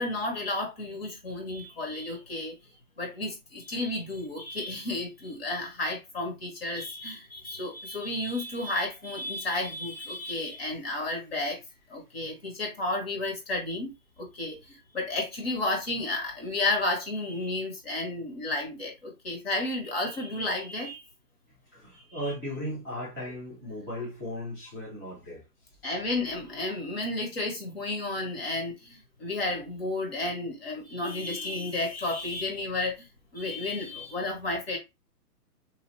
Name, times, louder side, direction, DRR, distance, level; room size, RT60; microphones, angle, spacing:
voice 1, 0.0-2.5 3.0-11.6 11.9-13.9 14.2-21.0 22.2-22.3 25.8-33.1 33.3-34.8, left 2 dB, 40° left, 0.9 m, -32 dB
voice 2, 21.7-25.4, equal, 10° left, 0.7 m, -36 dB
2.8 x 2.2 x 3.1 m
hypercardioid pair, 170°, 47 cm